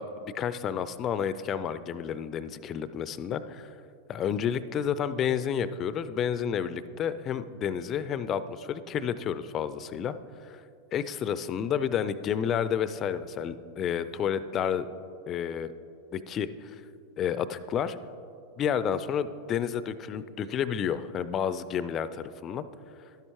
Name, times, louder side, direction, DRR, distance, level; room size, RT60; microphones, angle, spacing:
voice 1, 0.0-3.7 4.1-10.1 10.4-10.6 10.9-14.9 15.3-15.7 16.1-16.8 17.2-18.0 18.6-22.6, left 8 dB, 30° left, 15 dB, 0.4 m, -30 dB
12.0 x 10.5 x 3.0 m, 2.6 s
figure-of-eight pair, 90°, 0 cm